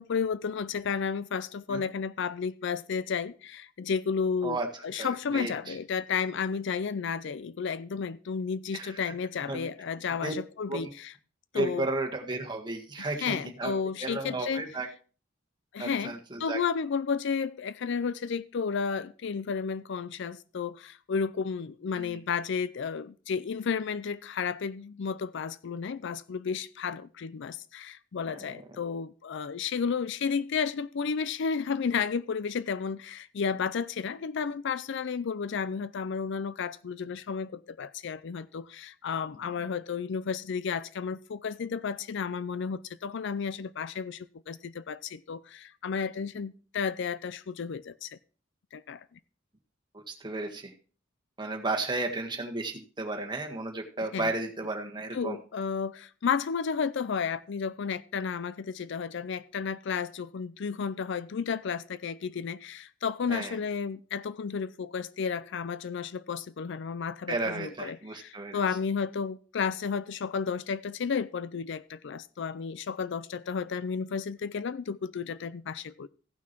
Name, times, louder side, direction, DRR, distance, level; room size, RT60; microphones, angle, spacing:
voice 1, 0.0-11.1 11.5-11.9 13.0-14.7 15.7-16.1 16.4-48.2 48.7-49.1 54.1-54.3 55.1-76.1, left 6 dB, 65° left, 0.4 m, -32 dB
voice 2, 5.0-5.7 8.7-8.9 9.5-9.7 10.2-10.3 10.7-10.9 11.5-13.7 14.0-14.9 15.8-16.6 22.0-22.2 28.3-28.6 49.9-50.7 51.4-55.4 63.3-63.6 67.3-68.6, right 2 dB, 25° right, 1.6 m, -33 dB
15.5 x 5.9 x 4.5 m
head